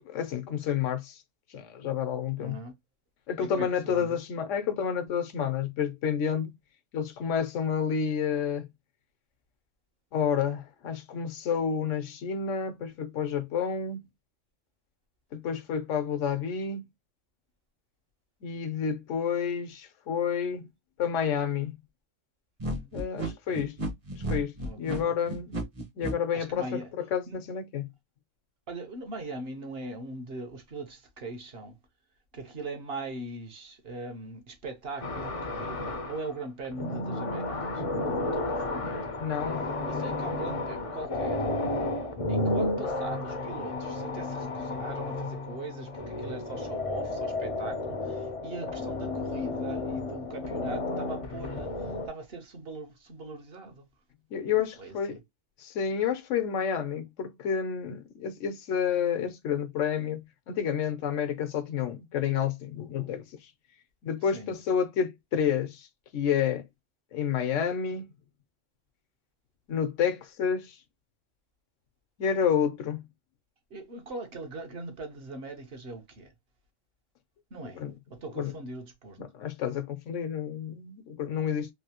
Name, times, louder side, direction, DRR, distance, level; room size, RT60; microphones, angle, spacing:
voice 1, 0.0-1.2 1.5-2.6 3.3-6.5 6.9-8.7 10.1-14.1 15.3-16.8 18.4-20.7 21.0-21.8 22.9-23.8 24.1-25.5 26.0-27.9 39.2-40.2 54.3-55.2 55.6-63.5 64.0-65.9 66.1-66.6 67.1-68.1 69.7-70.8 72.2-73.1 77.8-77.9 78.3-78.5 79.2-81.7, left 7 dB, 75° left, 1.0 m, -30 dB
voice 2, 2.4-2.7 3.4-4.2 22.6-22.9 24.6-25.1 26.3-26.9 27.3-27.4 28.7-31.8 32.3-39.0 39.9-41.6 42.3-53.8 54.8-55.2 64.3-64.5 73.7-76.3 77.5-77.8 78.1-79.2, right 3 dB, 55° right, 1.1 m, -40 dB
sound 1, 22.6-26.1, right 1 dB, 30° right, 0.8 m, -33 dB
sound 2, 35.0-36.3 36.6-52.1, left 2 dB, 40° left, 0.5 m, -32 dB
3.3 x 2.7 x 2.8 m
omnidirectional pair, 1.3 m